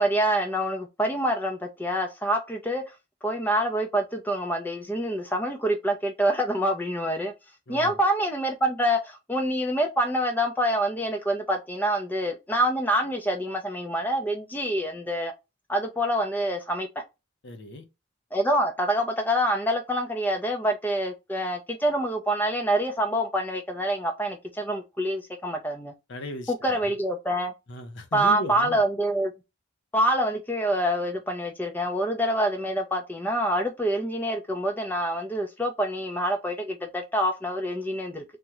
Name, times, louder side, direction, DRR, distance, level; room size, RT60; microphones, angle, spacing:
voice 1, 0.0-2.8 3.2-7.3 7.7-15.3 15.7-17.0 18.3-25.9 26.6-27.5 28.1-29.3 29.9-38.2, right 1 dB, 10° left, 0.5 m, -26 dB
voice 2, 7.7-8.0 17.4-17.9 26.1-26.9 27.7-28.8, left 1 dB, 60° left, 0.7 m, -37 dB
3.6 x 2.1 x 2.9 m
head